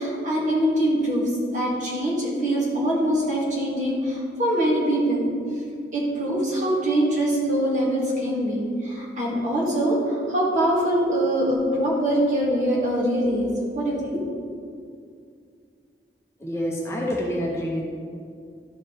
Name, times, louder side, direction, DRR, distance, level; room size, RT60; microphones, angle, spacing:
voice 1, 0.0-5.3 5.9-14.2, right 1 dB, 45° right, -5 dB, 1.9 m, -23 dB
voice 2, 16.4-17.8, equal, 15° left, -3 dB, 0.8 m, -27 dB
12.0 x 4.5 x 3.9 m, 2.3 s
head